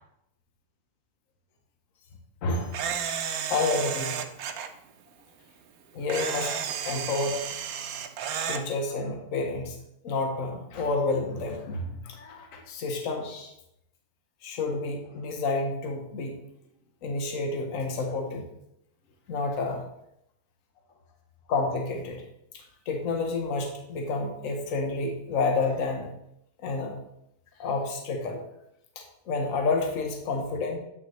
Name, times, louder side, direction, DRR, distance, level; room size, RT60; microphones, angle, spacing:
voice 1, 2.4-2.8 3.5-4.2 5.9-6.5 6.8-7.4 8.5-9.8 10.0-13.5 14.4-16.4 17.0-18.4 19.3-19.8 21.5-22.2 22.9-26.1 26.6-26.9 27.6-28.4 29.3-30.8, left 3 dB, 65° left, 2 dB, 1.3 m, -29 dB
Camera, 2.7-4.7 6.1-8.6, right 7 dB, 80° right, 1.1 m, -32 dB
8.5 x 5.5 x 3.1 m, 0.79 s
omnidirectional pair, 1.5 m